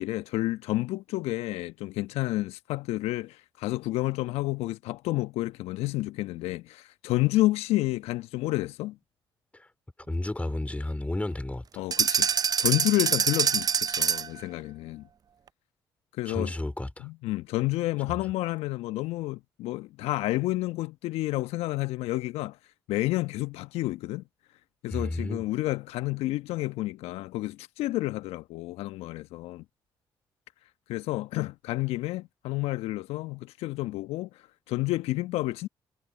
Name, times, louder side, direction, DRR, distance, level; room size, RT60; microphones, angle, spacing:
voice 1, 0.0-9.0 11.8-15.1 16.2-16.5 17.0-22.6 22.9-24.2 24.8-29.6 30.9-35.7, left 18 dB, 70° left, 1.1 m, -30 dB
voice 2, 10.1-11.9 16.3-17.1 24.9-25.4, left 1 dB, 15° left, 2.9 m, -32 dB
sound 1, 11.9-14.4, right 7 dB, 35° right, 0.4 m, -25 dB
hypercardioid pair, 45°, 11 cm